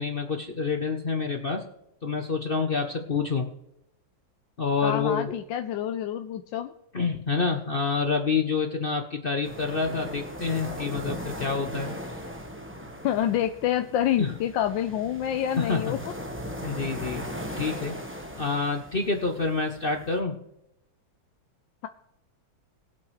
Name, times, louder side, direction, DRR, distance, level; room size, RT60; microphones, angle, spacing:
voice 1, 0.0-1.7 2.0-3.5 4.6-5.3 6.9-11.9 14.2-14.3 15.6-15.9 16.6-17.3 17.6-17.9 18.3-20.3, left 4 dB, 55° left, 4 dB, 0.6 m, -27 dB
voice 2, 4.8-6.7 13.0-16.0, left 10 dB, 75° left, 7 dB, 1.3 m, -27 dB
sound 1, 9.4-20.2, equal, 10° right, 0.8 m, -38 dB
20.0 x 8.7 x 3.2 m, 0.83 s
omnidirectional pair, 2.1 m